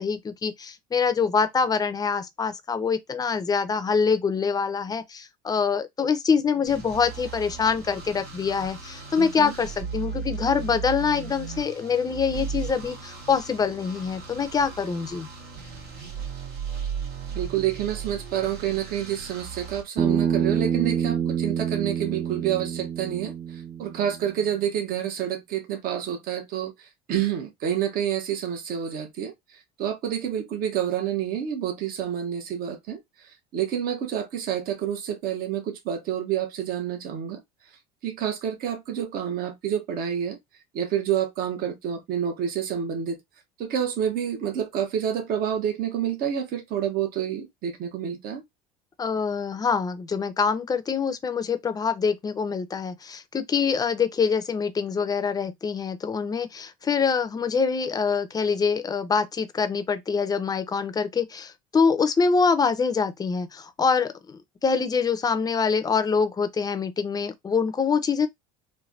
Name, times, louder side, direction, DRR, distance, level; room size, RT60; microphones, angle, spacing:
voice 1, 0.0-15.3 49.0-68.3, left 5 dB, 20° left, 0.5 m, -25 dB
sound 1, 6.6-19.8, right 6 dB, 75° right, 1.4 m, -36 dB
voice 2, 9.2-9.5 17.3-37.4 38.0-40.4 40.7-43.2 43.6-48.4, right 9 dB, 55° right, 1.0 m, -28 dB
Bass guitar, 20.0-24.3, right 8 dB, 25° right, 0.5 m, -27 dB
3.2 x 2.2 x 2.5 m
supercardioid pair, 85°, 17 cm